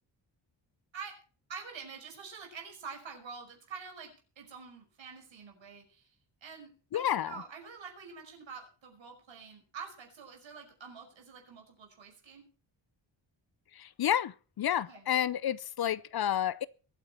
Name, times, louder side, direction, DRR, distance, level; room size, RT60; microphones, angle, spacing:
voice 1, 1.5-6.1 6.4-12.5 14.9-15.1, right 5 dB, 75° right, 5.5 m, -47 dB
voice 2, 6.9-7.3 13.8-16.7, left 10 dB, 55° left, 0.6 m, -30 dB
22.5 x 9.2 x 4.4 m
wide cardioid pair, 165°, 46 cm